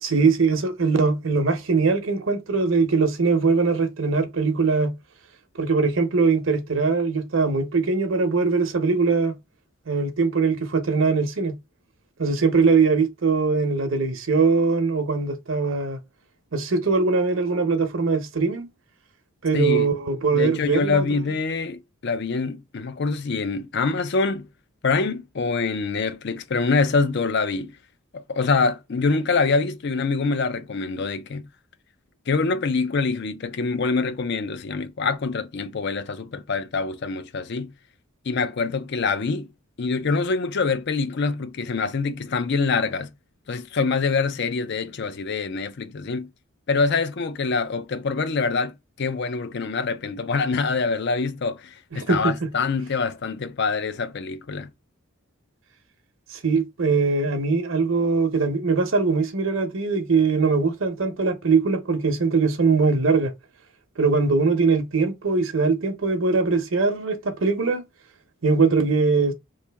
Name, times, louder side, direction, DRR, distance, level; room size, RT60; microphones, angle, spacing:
voice 1, 0.0-4.9 5.6-9.4 9.9-11.6 12.2-16.0 16.5-18.7 19.4-21.0 51.9-52.5 56.3-63.3 64.0-67.8 68.4-69.3, right 4 dB, 65° right, 0.8 m, -21 dB
voice 2, 19.5-19.9 20.3-24.5 24.8-27.7 28.1-31.4 32.3-37.7 38.2-39.5 39.8-43.1 43.5-46.3 46.7-54.7, left 4 dB, 55° left, 0.5 m, -25 dB
3.3 x 2.6 x 3.4 m
head